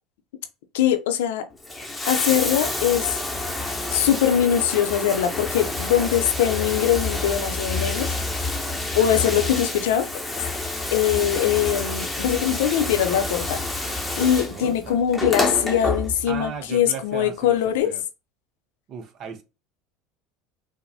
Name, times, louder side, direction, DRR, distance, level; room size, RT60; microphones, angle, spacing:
voice 1, 0.7-1.5 2.1-3.2 3.9-8.2 8.9-10.1 10.9-13.6 14.2-17.9, left 10 dB, 80° left, 0.6 m, -22 dB
Bathtub (filling or washing), 1.5-16.5 17.6-17.7, left 2 dB, 10° left, 0.8 m, -28 dB
voice 2, 14.2-15.0 16.3-18.0 18.9-19.4, right 7 dB, 50° right, 0.7 m, -36 dB
4.7 x 2.1 x 2.7 m
hypercardioid pair, 85°, 0 cm